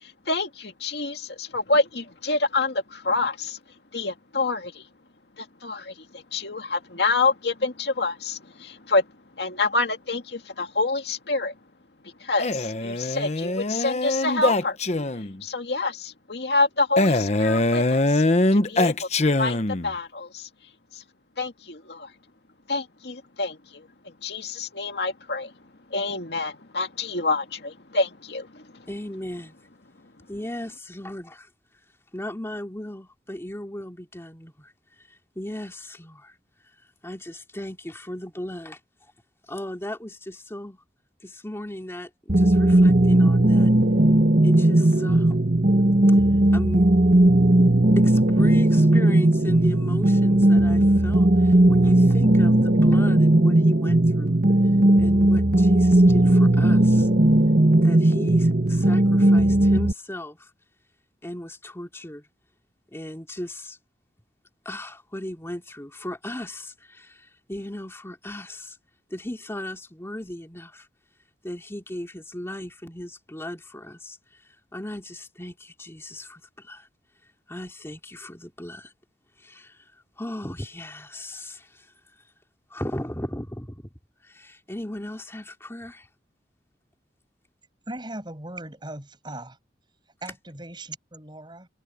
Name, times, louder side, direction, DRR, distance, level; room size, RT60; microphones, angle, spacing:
voice 1, 0.0-3.6 3.9-4.9 5.4-9.1 9.4-11.5 12.2-14.8 15.4-18.2 18.5-19.1 19.4-20.5 20.9-21.0 21.4-22.1 22.7-25.5 25.9-28.9, left 3 dB, 70° left, 2.2 m, -27 dB
Male speech man speaking, 12.4-15.4 17.0-19.9, left 2 dB, 40° left, 1.0 m, -23 dB
voice 2, 28.9-29.6 30.3-31.5 32.1-34.7 35.4-36.3 37.0-38.8 39.5-40.8 41.2-43.7 44.4-45.3 46.5-46.9 48.0-54.3 55.0-57.1 57.8-60.5 61.2-62.2 62.9-63.8 64.6-67.2 67.5-68.8 69.1-70.9 71.4-74.2 74.7-76.9 77.5-78.9 79.4-79.8 80.2-81.7 82.7-83.9 84.3-86.1, left 1 dB, 15° left, 2.6 m, -36 dB
sound 1, 42.3-59.9, right 1 dB, 55° right, 1.3 m, -17 dB
voice 3, 87.9-89.6 90.2-91.7, right 1 dB, 25° right, 6.6 m, -38 dB
head